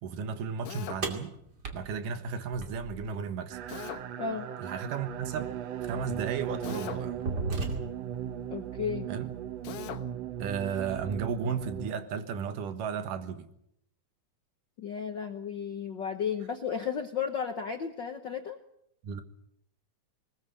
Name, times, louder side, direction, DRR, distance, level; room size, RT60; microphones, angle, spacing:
voice 1, 0.0-1.4 1.7-3.6 4.6-5.5 5.8-7.3 9.1-9.3 10.4-13.5 19.0-19.2, right 6 dB, 85° right, 3.0 m, -34 dB
Drill, 0.7-1.1 3.7-4.1 6.6-7.1 9.6-10.1, left 11 dB, 85° left, 2.8 m, -40 dB
sound 1, 1.0-3.2 5.1-5.2 6.0-6.2 6.7-8.2, right 3 dB, 35° right, 2.7 m, -35 dB
sound 2, 3.5-11.9, right 10 dB, 65° right, 1.9 m, -37 dB
voice 2, 8.5-9.1 14.8-18.6, left 7 dB, 65° left, 1.1 m, -33 dB
20.5 x 20.0 x 7.8 m
omnidirectional pair, 3.6 m